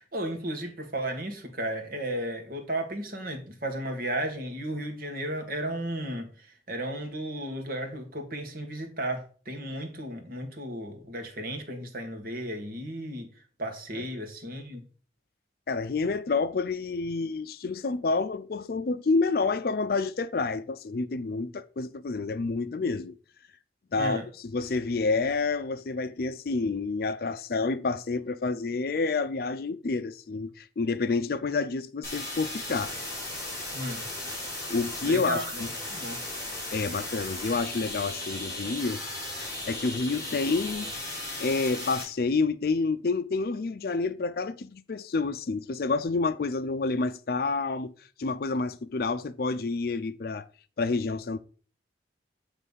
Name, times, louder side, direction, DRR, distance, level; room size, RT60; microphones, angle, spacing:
voice 1, 0.0-13.3 13.6-14.8 24.0-24.3 33.7-34.1 35.0-35.6 35.9-36.2, right 1 dB, 55° right, 1.6 m, -34 dB
voice 2, 15.7-23.2 23.9-32.9 34.7-35.7 36.7-39.0 39.4-40.9 41.4-47.9 48.2-50.5 50.8-51.4, left 4 dB, 55° left, 0.4 m, -29 dB
sound 1, 32.0-42.0, left 1 dB, 20° left, 3.6 m, -36 dB
8.0 x 3.3 x 5.3 m
head